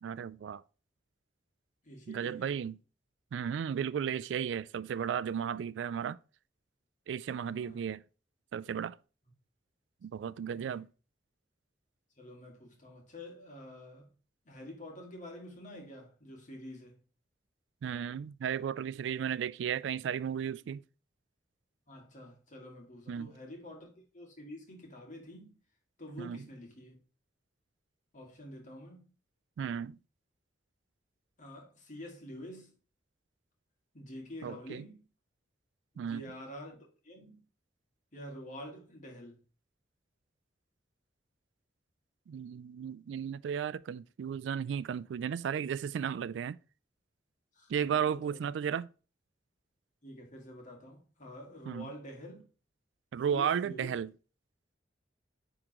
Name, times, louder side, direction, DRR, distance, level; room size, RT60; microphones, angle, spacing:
voice 1, 0.0-0.6 2.1-2.8 3.3-6.2 7.1-8.0 8.5-9.0 10.0-10.9 17.8-20.8 23.1-23.3 26.2-26.4 29.6-30.0 34.4-34.8 36.0-36.2 42.3-46.6 47.7-48.9 51.7-51.9 53.1-54.1, right 8 dB, 80° right, 0.3 m, -34 dB
voice 2, 1.8-2.6 7.4-7.8 10.1-10.8 12.2-14.1 14.4-17.0 21.9-25.6 26.0-27.0 28.1-29.0 31.4-32.7 33.9-35.0 35.9-37.4 38.1-39.4 47.5-48.5 50.0-52.5 53.3-53.9, left 1 dB, 45° left, 2.0 m, -48 dB
9.6 x 3.7 x 2.9 m
head